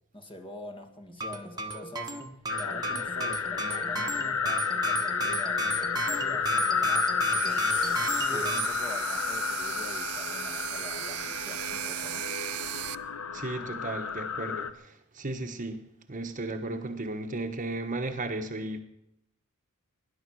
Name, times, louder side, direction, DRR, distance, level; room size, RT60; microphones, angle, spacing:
voice 1, 0.1-2.1 2.6-7.7 8.2-12.3, left 1 dB, 25° left, 5 dB, 1.9 m, -45 dB
sound 1, 1.1-8.7, right 2 dB, 20° right, 1.4 m, -34 dB
sound 2, 2.5-14.7, left 6 dB, 70° left, 0.9 m, -31 dB
sound 3, 7.2-12.9, right 14 dB, 80° right, 0.5 m, -37 dB
voice 2, 13.3-15.8 16.1-18.8, right 2 dB, 35° right, 6 dB, 1.3 m, -35 dB
20.0 x 11.0 x 6.3 m, 0.83 s
head